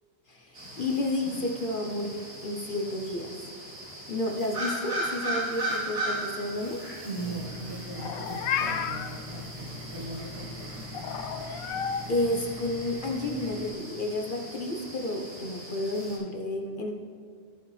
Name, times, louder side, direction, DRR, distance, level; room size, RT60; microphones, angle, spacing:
voice 1, 0.3-3.3 4.1-6.8 12.1-16.9, left 1 dB, 45° left, 2 dB, 0.8 m, -31 dB
sound 1, 0.5-16.2, right 1 dB, 90° right, 2.7 m, -38 dB
voice 2, 7.0-10.8, right 2 dB, 70° right, -3 dB, 2.0 m, -39 dB
sound 2, 7.1-13.7, left 2 dB, 35° right, 0.6 m, -42 dB
Meow, 7.9-9.1 10.9-12.0, left 7 dB, 85° left, 1.1 m, -31 dB
14.0 x 5.5 x 3.2 m, 2.2 s
omnidirectional pair, 1.4 m